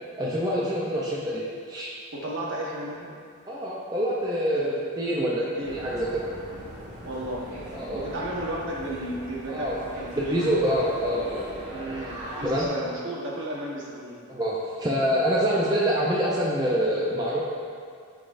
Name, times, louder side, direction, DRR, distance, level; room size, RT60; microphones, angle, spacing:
voice 1, 0.2-1.9 3.5-6.2 7.7-8.0 9.5-9.8 10.1-11.5 12.4-12.7 14.3-17.4, equal, 20° right, -6 dB, 0.5 m, -26 dB
voice 2, 2.1-3.1 4.5-4.6 5.4-5.8 7.0-7.5 7.9-10.5 11.7-14.2, right 1 dB, 55° right, -4 dB, 1.0 m, -34 dB
sound 1, 5.6-12.7, equal, 35° right, 1.5 m, -40 dB
9.6 x 4.0 x 2.6 m, 2.2 s
head